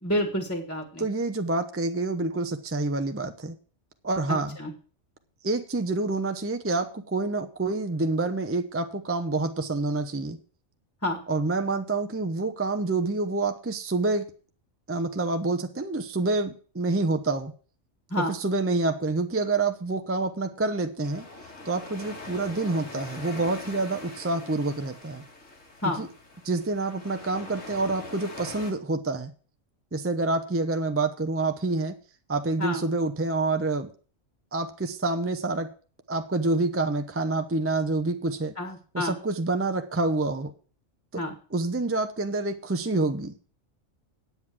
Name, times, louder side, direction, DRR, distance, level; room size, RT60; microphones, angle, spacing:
voice 1, 0.0-1.1 4.3-4.7 11.0-11.2 18.1-18.4 25.8-26.1 32.6-32.8 38.5-39.2 41.1-41.3, left 1 dB, 10° left, 4 dB, 1.6 m, -29 dB
voice 2, 1.0-3.5 4.0-4.6 5.4-10.4 11.3-14.3 14.9-17.5 18.2-21.2 21.6-25.2 26.0-26.1 26.4-29.3 29.9-32.0 32.3-33.9 34.5-35.7 36.1-38.5 38.9-40.5 41.5-43.3, right 3 dB, 15° right, 8 dB, 0.6 m, -27 dB
sound 1, 21.0-28.7, left 2 dB, 80° left, 2.6 m, -43 dB
9.2 x 8.2 x 6.0 m, 0.40 s
omnidirectional pair, 1.3 m